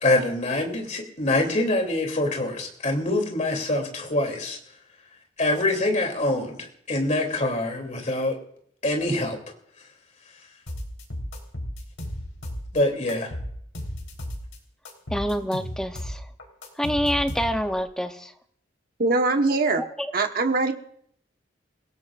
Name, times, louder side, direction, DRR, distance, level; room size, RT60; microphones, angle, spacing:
voice 1, 0.0-4.6 5.4-8.3 8.8-9.4 12.7-13.3, left 2 dB, 35° left, 2 dB, 2.9 m, -25 dB
sound 1, 10.7-12.8 13.1-14.6 14.9-17.8, equal, 90° left, 3.9 m, -34 dB
voice 2, 15.1-16.3 16.8-18.3 19.8-20.1, equal, 5° left, 6 dB, 0.6 m, -27 dB
voice 3, 19.0-19.8 20.1-20.7, right 3 dB, 50° right, 5 dB, 1.2 m, -22 dB
28.5 x 17.0 x 2.5 m, 0.66 s
head